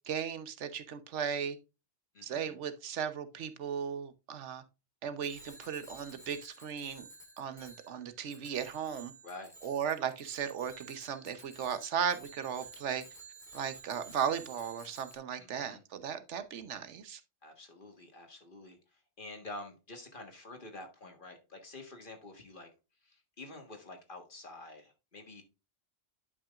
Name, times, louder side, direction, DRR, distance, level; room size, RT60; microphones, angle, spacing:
voice 1, 0.1-1.6 2.2-4.6 5.0-7.1 7.4-9.1 9.6-13.0 13.5-17.2, right 8 dB, 80° right, 1.2 m, -36 dB
voice 2, 2.1-2.6 9.2-9.5 15.4-15.8 17.4-22.7 23.0-25.4, left 2 dB, 45° left, 1.7 m, -48 dB
Bicycle bell, 5.2-15.2, right 2 dB, 5° left, 1.8 m, -53 dB
10.5 x 5.8 x 2.4 m
omnidirectional pair, 1.2 m